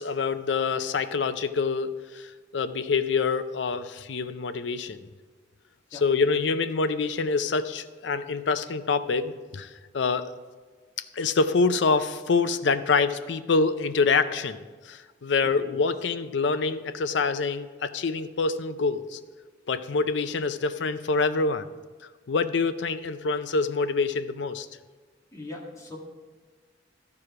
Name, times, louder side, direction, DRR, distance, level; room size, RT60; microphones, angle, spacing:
voice 1, 0.0-5.0 5.9-10.3 11.1-19.2 19.7-21.7 22.3-24.7, left 4 dB, 70° left, 11 dB, 0.5 m, -26 dB
voice 2, 15.4-15.8 25.3-26.0, left 2 dB, 20° left, -3 dB, 1.8 m, -41 dB
13.5 x 4.8 x 4.8 m, 1.4 s
head